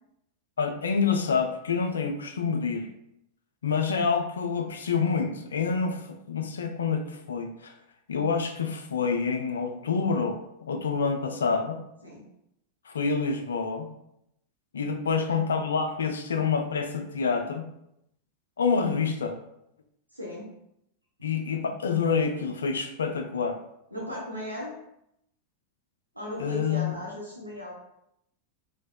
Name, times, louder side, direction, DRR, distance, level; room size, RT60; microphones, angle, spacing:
voice 1, 0.6-2.9 3.6-7.7 8.1-10.4 10.7-11.8 12.9-13.9 14.7-17.6 18.6-19.4 21.2-23.6 26.4-26.9, left 5 dB, 70° left, 5 dB, 0.4 m, -27 dB
voice 2, 20.1-20.4 23.9-24.7 26.1-27.7, left 1 dB, 90° right, -5 dB, 0.7 m, -36 dB
4.0 x 2.6 x 2.2 m, 0.79 s
figure-of-eight pair, 90°, 0 cm